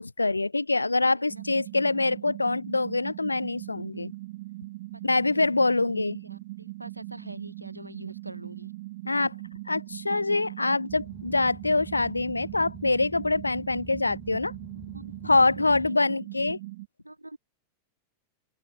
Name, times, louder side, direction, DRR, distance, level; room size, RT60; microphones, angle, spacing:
voice 1, 0.0-4.1 5.0-6.2 9.1-9.3 9.7-14.5 15.2-16.6, left 3 dB, 80° left, 0.3 m, -25 dB
voice 2, 0.8-1.4 1.7-2.3 4.9-8.7 10.0-10.2 14.9-15.1 15.6-16.0 17.0-17.4, right 1 dB, 85° right, 1.0 m, -44 dB
sound 1, 1.3-16.9, right 20 dB, 50° right, 2.5 m, -40 dB
Boat Water vehicle, 10.9-15.9, left 3 dB, 10° left, 1.0 m, -48 dB
open air
figure-of-eight pair, 90°, 0 cm